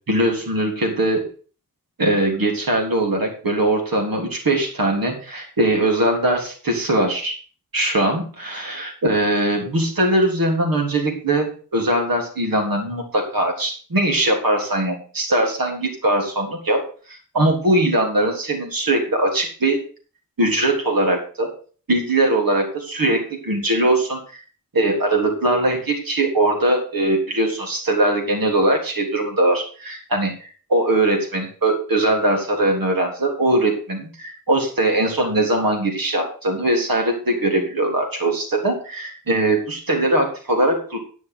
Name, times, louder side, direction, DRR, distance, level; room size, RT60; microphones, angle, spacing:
voice 1, 0.1-1.2 2.0-7.3 7.7-16.8 17.1-19.8 20.4-21.5 21.9-24.2 24.7-41.0, right 1 dB, 80° right, 1 dB, 3.4 m, -21 dB
10.5 x 6.3 x 6.7 m, 0.41 s
wide cardioid pair, 70°, 34 cm